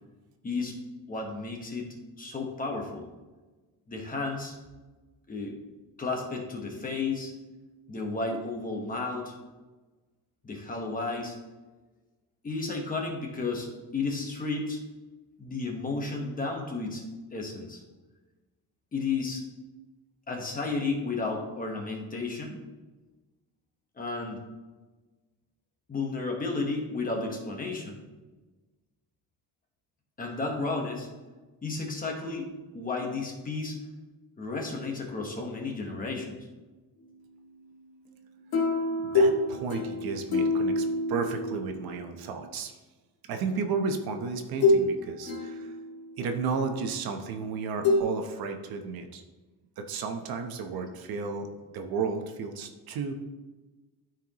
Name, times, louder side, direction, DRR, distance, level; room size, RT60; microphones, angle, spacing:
voice 1, 0.4-0.7 1.1-3.0 3.9-4.5 5.3-5.5 6.0-7.3 7.9-9.3 10.4-11.4 12.4-14.8 15.4-17.0 17.3-17.8 18.9-19.4 20.3-22.5 24.0-24.4 25.9-28.0 30.2-31.1 31.6-32.5 32.7-33.8 34.4-36.4, left 3 dB, 20° left, 1 dB, 1.2 m, -32 dB
sound 1, 38.5-42.1 43.5-43.6 44.6-44.9 45.2-46.1 47.8-48.0, left 2 dB, 70° left, 2.0 m, -26 dB
voice 2, 39.0-42.8 43.3-45.7 46.2-49.2 49.8-53.2, right 5 dB, 70° right, 5 dB, 1.0 m, -33 dB
13.0 x 4.6 x 3.0 m, 1.2 s
cardioid pair, 170°, 38 cm